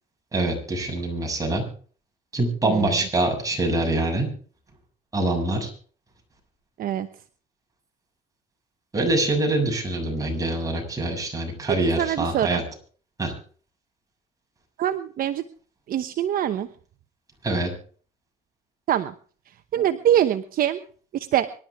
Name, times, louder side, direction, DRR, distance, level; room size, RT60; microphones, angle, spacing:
voice 1, 0.3-1.6 2.3-4.3 5.1-5.7 8.9-12.6 13.2-13.3 17.4-17.7, right 2 dB, 20° right, 1 dB, 7.2 m, -24 dB
voice 2, 2.6-3.0 6.8-7.1 12.0-12.6 14.8-15.4 15.9-16.7 18.9-19.1 19.7-20.8 21.1-21.5, right 11 dB, 60° right, 9 dB, 1.0 m, -23 dB
25.0 x 12.0 x 3.6 m, 0.43 s
cardioid pair, 110°, 17 cm